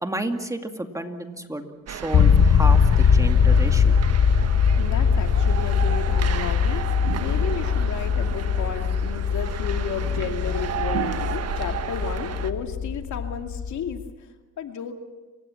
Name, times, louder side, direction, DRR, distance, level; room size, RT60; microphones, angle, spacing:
voice 1, 0.0-4.0, right 1 dB, 10° right, 5 dB, 2.3 m, -31 dB
sound 1, 1.9-12.5, right 9 dB, 55° right, 1.4 m, -34 dB
sound 2, 2.1-14.1, left 6 dB, 45° left, 1.2 m, -21 dB
voice 2, 4.8-6.8 7.2-15.0, left 7 dB, 75° left, 5 dB, 2.4 m, -33 dB
sound 3, 7.0-7.9 10.9-11.8, right 11 dB, 70° right, 1.0 m, -36 dB
29.0 x 16.5 x 7.3 m, 1.2 s
cardioid pair, 90°, 30 cm